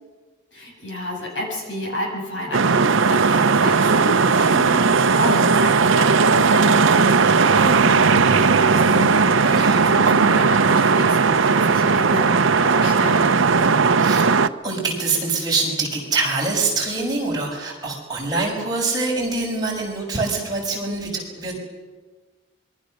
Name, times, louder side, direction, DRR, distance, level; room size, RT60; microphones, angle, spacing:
voice 1, 0.5-13.5, left 1 dB, 65° left, 0 dB, 7.4 m, -30 dB
sound 1, 2.5-14.5, right 5 dB, 80° right, 0.8 m, -17 dB
voice 2, 9.4-9.9 14.0-14.3 14.6-21.6, right 3 dB, 20° right, -2 dB, 6.1 m, -24 dB
26.5 x 23.0 x 6.5 m, 1.3 s
head